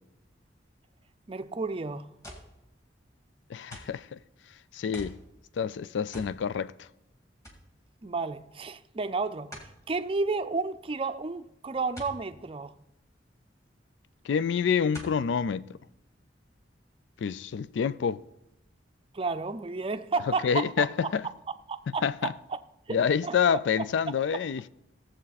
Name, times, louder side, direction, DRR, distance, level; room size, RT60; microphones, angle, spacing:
voice 1, 1.3-2.1 8.0-9.6 9.9-12.7 19.1-21.1 21.7-22.3 22.9-23.6, right 4 dB, 30° right, 0.5 m, -32 dB
sound 1, 2.2-2.6 3.7-4.0 4.9-5.2 6.1-6.4 6.8-6.9 7.4-7.7 9.5-9.8 12.0-12.2 13.7-13.8 14.9-15.2 15.9-16.0, equal, 15° left, 2.2 m, -44 dB
voice 2, 3.5-4.2 4.7-5.2 5.6-6.9 14.2-15.7 17.2-18.2 20.4-21.2 22.0-22.3 22.9-24.7, left 7 dB, 75° left, 0.4 m, -27 dB
17.0 x 7.6 x 4.1 m
head